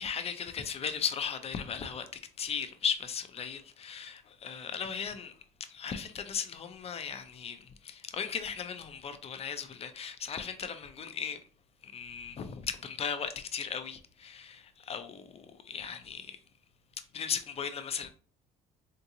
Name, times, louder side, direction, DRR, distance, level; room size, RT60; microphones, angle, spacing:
voice 1, 0.0-2.1 2.4-5.3 5.7-11.4 11.8-16.4 17.1-18.1, left 7 dB, 35° left, 0.5 m, -37 dB
3.6 x 2.8 x 2.5 m
cardioid pair, 110°, 17 cm